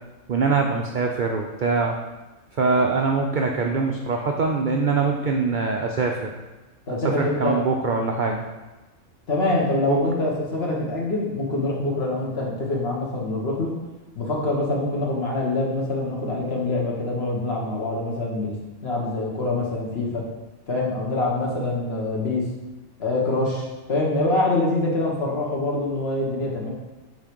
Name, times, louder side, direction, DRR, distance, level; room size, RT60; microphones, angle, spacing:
voice 1, 0.3-2.0 2.6-6.3 6.9-8.4 9.9-10.0, right 4 dB, 70° right, 1 dB, 0.4 m, -23 dB
voice 2, 6.9-7.6 9.3-13.7 14.2-20.2 20.7-22.5 23.0-26.7, left 2 dB, 50° left, -2 dB, 1.4 m, -25 dB
7.4 x 3.3 x 5.1 m, 1.1 s
omnidirectional pair, 1.5 m